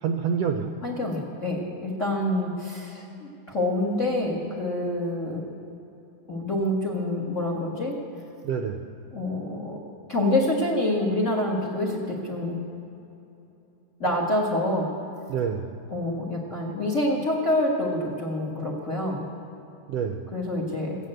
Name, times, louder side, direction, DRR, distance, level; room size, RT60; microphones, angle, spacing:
voice 1, 0.0-0.7 8.4-8.9 15.3-15.8 19.9-20.3, right 6 dB, 80° right, 5 dB, 1.5 m, -27 dB
voice 2, 0.8-5.4 6.3-7.9 9.1-9.8 10.1-12.6 14.0-14.9 15.9-19.2 20.3-21.0, left 1 dB, 35° left, -1 dB, 1.2 m, -27 dB
16.5 x 8.9 x 7.6 m, 2.9 s
omnidirectional pair, 3.4 m